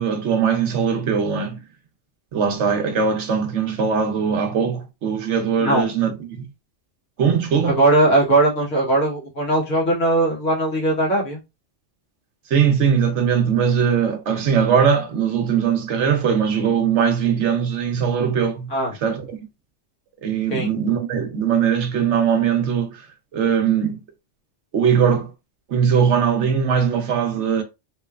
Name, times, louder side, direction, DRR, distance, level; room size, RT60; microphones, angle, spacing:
voice 1, 0.0-1.6 2.3-6.4 7.2-7.8 12.5-18.7 19.0-19.4 20.2-23.1 23.3-24.0 24.7-25.3 25.7-27.6, right 7 dB, 70° right, 1.1 m, -20 dB
voice 2, 7.7-11.4 18.7-18.9 20.5-20.7, right 2 dB, 85° left, 1.8 m, -19 dB
3.7 x 3.1 x 2.4 m
omnidirectional pair, 1.2 m